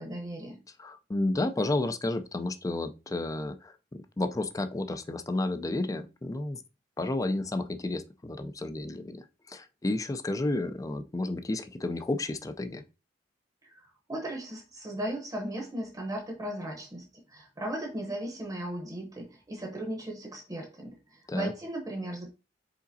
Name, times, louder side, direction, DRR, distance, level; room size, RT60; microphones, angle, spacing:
voice 1, 0.0-0.6 13.7-22.3, right 1 dB, 20° right, 0.8 m, -37 dB
voice 2, 0.8-6.6 7.0-12.8 21.3-21.5, left 2 dB, 20° left, 0.4 m, -31 dB
5.0 x 4.0 x 2.7 m
head